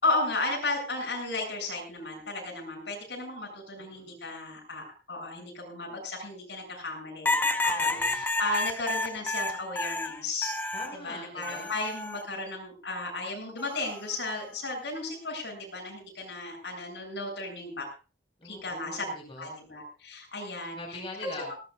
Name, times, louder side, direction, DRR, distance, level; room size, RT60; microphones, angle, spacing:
voice 1, 0.0-10.5 11.0-17.9 18.4-19.0 19.4-20.8, left 2 dB, 80° left, 0 dB, 7.9 m, -34 dB
voice 2, 3.7-4.1 7.8-8.2 10.7-11.8 18.4-19.6 20.7-21.6, left 2 dB, 30° left, -1 dB, 5.3 m, -43 dB
sound 1, 7.2-11.0 11.4-12.2 13.6-14.0, left 2 dB, 10° left, 0.7 m, -30 dB
20.0 x 19.5 x 2.5 m, 0.34 s
head